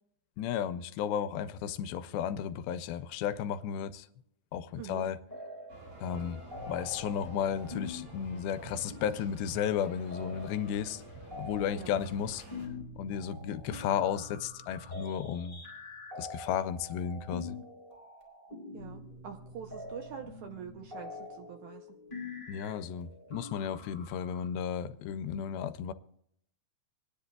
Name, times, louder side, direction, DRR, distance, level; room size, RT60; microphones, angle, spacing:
voice 1, 0.4-4.1 4.5-5.2 6.0-6.4 6.7-11.0 11.4-12.4 13.0-15.6 16.2-17.6 22.5-25.9, left 8 dB, 90° left, 2.4 m, -34 dB
sound 1, 5.3-5.9 6.2-24.5, left 2 dB, 15° left, 3.8 m, -45 dB
sound 2, 5.7-12.7, right 2 dB, 50° right, 5.2 m, -49 dB
voice 2, 18.7-21.9, right 8 dB, 75° right, 1.8 m, -45 dB
26.0 x 10.0 x 2.3 m
omnidirectional pair, 4.1 m